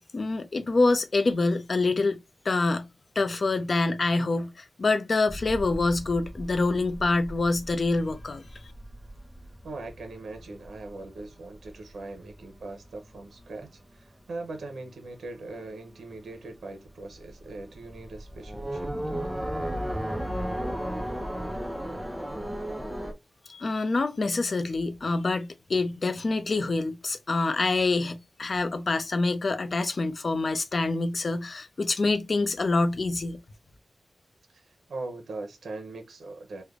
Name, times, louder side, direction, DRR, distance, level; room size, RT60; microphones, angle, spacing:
voice 1, 0.1-2.2 2.4-2.9 3.2-8.4 23.5-33.4, left 3 dB, 50° left, 0.5 m, -26 dB
sound 1, 5.3-14.2 14.5-15.2 15.5-15.6 16.0-23.1, equal, 5° right, 0.6 m, -36 dB
voice 2, 9.6-19.2 34.5-36.6, right 2 dB, 80° right, 0.7 m, -41 dB
3.3 x 2.1 x 3.5 m
wide cardioid pair, 100°, 0 cm